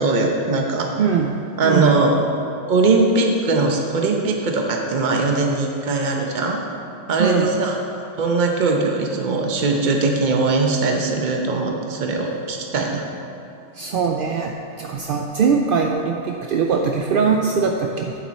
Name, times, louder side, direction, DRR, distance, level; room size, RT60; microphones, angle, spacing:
voice 1, 0.0-0.9 1.6-2.1 2.7-6.6 7.1-13.0, right 3 dB, 40° right, 1 dB, 0.9 m, -20 dB
voice 2, 1.0-1.3 1.6-2.0 7.2-7.6 13.8-18.1, right 6 dB, 70° right, 2 dB, 0.5 m, -21 dB
9.0 x 7.2 x 4.2 m, 2.6 s
omnidirectional pair, 1.4 m